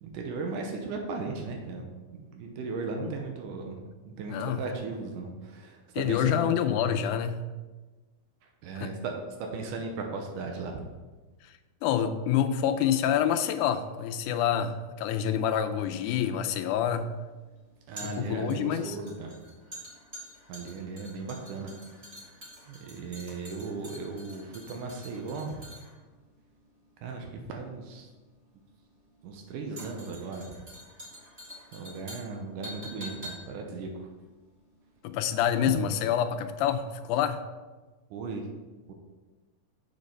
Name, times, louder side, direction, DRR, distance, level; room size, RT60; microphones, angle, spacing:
voice 1, 0.0-6.4 8.6-9.1 9.4-10.9 17.9-19.4 20.5-21.7 22.2-22.4 22.7-25.6 27.0-28.1 29.2-30.5 31.7-34.1 35.7-35.8 38.1-38.5 38.9-39.0, right 4 dB, 90° right, 2 dB, 2.4 m, -37 dB
voice 2, 6.0-7.4 8.8-8.9 11.4-11.5 11.8-17.1 18.0-19.0 35.0-37.4, left 9 dB, 80° left, 9 dB, 2.0 m, -27 dB
sound 1, 15.8-35.1 35.3-35.5, equal, 20° right, 2.7 m, -47 dB
7.5 x 5.3 x 5.2 m, 1.2 s
omnidirectional pair, 3.7 m